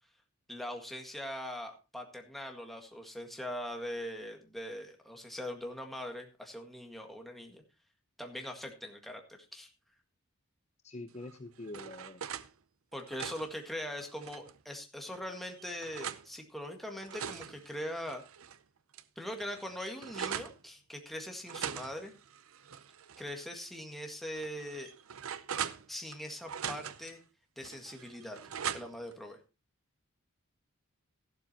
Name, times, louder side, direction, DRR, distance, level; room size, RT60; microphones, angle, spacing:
voice 1, 0.5-7.6 8.2-9.2 9.5-9.7 12.9-18.2 19.2-22.1 23.2-24.9 25.9-27.2 27.6-28.4 28.7-29.4, equal, ahead, 3 dB, 1.7 m, -41 dB
voice 2, 10.8-12.2, left 2 dB, 35° left, 8 dB, 0.7 m, -45 dB
sound 1, 11.2-12.5 12.9-14.6 15.1-16.3 16.8-18.6 18.9-19.0 19.3-20.6 21.4-23.3 23.6-23.7 24.4-26.2 26.5-27.1 27.6-29.1, right 8 dB, 75° right, 0.6 m, -41 dB
14.0 x 12.0 x 2.8 m, 0.29 s
head